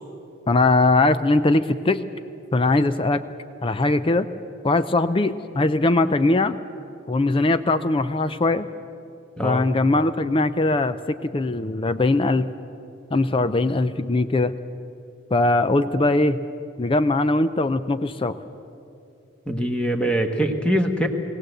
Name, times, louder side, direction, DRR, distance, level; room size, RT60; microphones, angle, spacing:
voice 1, 0.5-2.0 2.5-3.2 3.6-4.3 4.6-6.6 7.1-8.7 9.4-12.5 13.1-14.5 15.3-16.4 16.8-18.4, left 2 dB, 25° left, 12 dB, 0.4 m, -20 dB
voice 2, 19.5-21.1, right 1 dB, 5° left, 4 dB, 1.1 m, -23 dB
20.0 x 17.0 x 7.8 m, 2.7 s
head